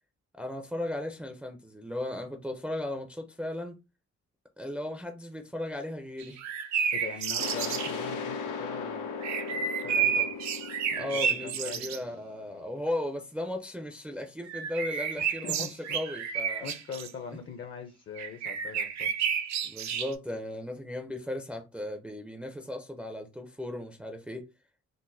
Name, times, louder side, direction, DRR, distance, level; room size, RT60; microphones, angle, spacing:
voice 1, 0.3-3.8 4.6-6.4 10.9-16.7 19.6-24.5, left 1 dB, 5° right, 0.4 m, -36 dB
sound 1, 6.2-8.0 9.2-12.0 14.5-17.1 18.2-20.1, right 7 dB, 65° right, 0.5 m, -31 dB
voice 2, 6.9-9.1 9.5-10.3 10.9-11.8 15.2-16.0 16.6-19.1, left 6 dB, 40° left, 0.6 m, -42 dB
sound 2, 7.4-12.9, left 5 dB, 85° left, 0.7 m, -37 dB
3.8 x 2.1 x 2.6 m
cardioid pair, 90°, 30 cm